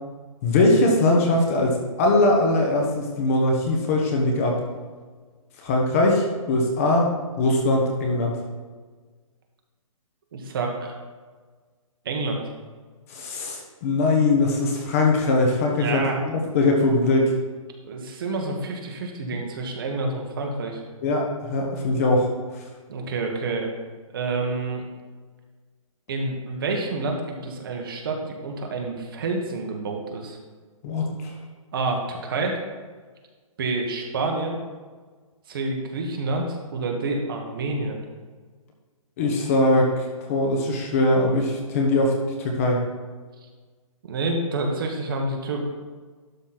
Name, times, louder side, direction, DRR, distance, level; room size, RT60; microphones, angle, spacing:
voice 1, 0.4-4.6 5.6-8.4 13.1-17.3 19.2-19.4 21.0-22.3 30.8-31.3 39.2-42.8, left 2 dB, 25° left, 1 dB, 1.1 m, -21 dB
voice 2, 10.3-10.9 12.0-12.4 15.7-16.2 17.8-20.8 22.9-23.7 24.1-24.8 26.1-30.4 31.7-32.6 33.6-34.6 35.5-38.0 44.0-45.7, right 3 dB, 40° right, 2 dB, 1.4 m, -28 dB
12.0 x 4.1 x 5.9 m, 1.4 s
hypercardioid pair, 170°, 18 cm